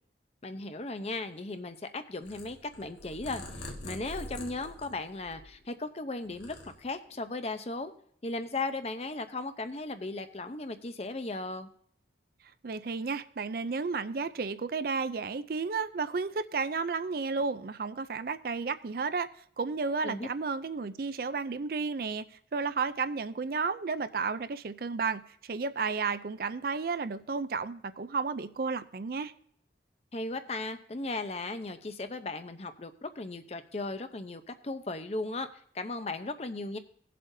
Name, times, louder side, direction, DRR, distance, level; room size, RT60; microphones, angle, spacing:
voice 1, 0.4-7.9 8.2-11.7 20.0-20.3 30.1-35.5 35.7-36.8, left 2 dB, 35° left, 0.6 m, -36 dB
Purr, 2.2-5.8 6.2-7.2, left 1 dB, 75° left, 1.6 m, -44 dB
voice 2, 12.6-19.3 19.6-22.2 22.5-29.3, right 4 dB, 55° right, 0.4 m, -32 dB
18.0 x 7.5 x 2.7 m
head